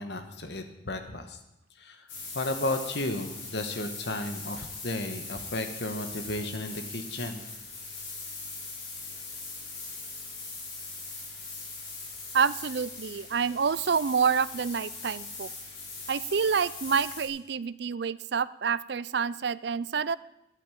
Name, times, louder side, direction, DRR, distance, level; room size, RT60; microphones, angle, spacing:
voice 1, 0.0-1.4 1.8-2.1 2.3-7.4, left 2 dB, 60° left, 7 dB, 1.4 m, -33 dB
sound 1, 2.1-17.3, left 3 dB, 75° left, 5.4 m, -41 dB
voice 2, 12.3-15.5 16.1-20.2, right 6 dB, 60° right, 18 dB, 0.4 m, -28 dB
11.5 x 9.2 x 8.4 m, 0.88 s
head